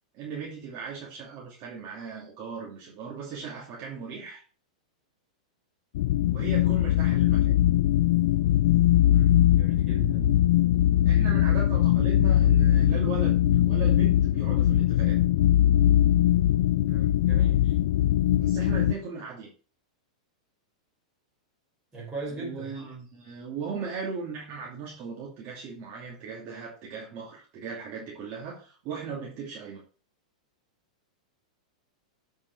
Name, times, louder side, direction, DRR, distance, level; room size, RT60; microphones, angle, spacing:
voice 1, 0.1-4.4 6.3-7.5 11.0-15.2 18.4-19.5 22.3-29.8, right 5 dB, 40° right, 2.7 m, -37 dB
sound 1, 5.9-18.9, left 12 dB, 65° left, 0.5 m, -21 dB
voice 2, 9.1-10.4 16.8-17.8 21.9-22.8, right 2 dB, 15° right, 4.3 m, -39 dB
8.0 x 5.4 x 4.6 m
supercardioid pair, 140°, 4 cm